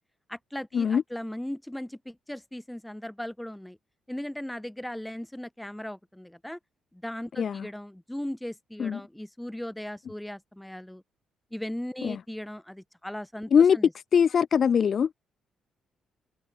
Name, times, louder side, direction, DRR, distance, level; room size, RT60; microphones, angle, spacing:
voice 1, 0.3-3.8 4.1-6.6 6.9-11.0 11.5-13.9, left 1 dB, 5° left, 4.7 m, -38 dB
voice 2, 14.1-15.1, left 7 dB, 50° left, 0.4 m, -21 dB
hypercardioid pair, 45°, 0 cm